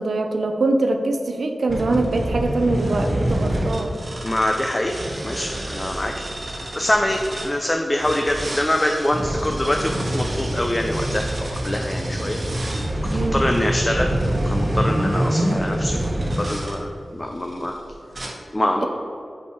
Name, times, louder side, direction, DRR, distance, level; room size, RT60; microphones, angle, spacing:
voice 1, 0.0-3.9 13.1-13.4, right 2 dB, 75° right, 5 dB, 0.5 m, -23 dB
sound 1, 1.7-7.5 8.0-16.8 17.4-17.7 18.1-18.3, right 1 dB, 50° right, 1.2 m, -26 dB
voice 2, 4.2-4.9 5.2-12.4 13.1-14.1 14.5-16.0 16.4-17.7 18.5-18.9, left 1 dB, 25° left, 2 dB, 0.5 m, -24 dB
5.8 x 4.6 x 4.7 m, 2.5 s
wide cardioid pair, 75°, 0 cm